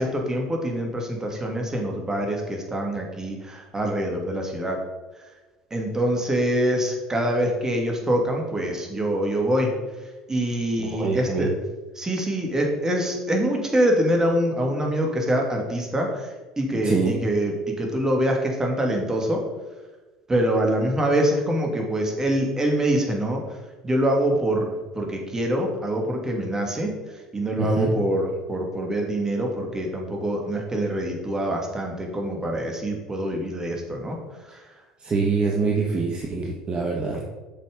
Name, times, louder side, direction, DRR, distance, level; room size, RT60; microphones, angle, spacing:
voice 1, 0.0-4.8 5.7-9.7 10.3-11.5 12.0-19.4 20.3-23.4 23.8-24.7 24.9-26.9 27.3-34.2 34.4-34.6, right 1 dB, 20° right, 1 dB, 2.7 m, -25 dB
voice 2, 10.8-11.5 16.8-17.2 27.6-27.9 34.5-34.6 35.0-37.3, right 4 dB, 35° right, -1 dB, 1.6 m, -25 dB
8.8 x 6.7 x 5.3 m, 1.2 s
hypercardioid pair, 65°, 3 cm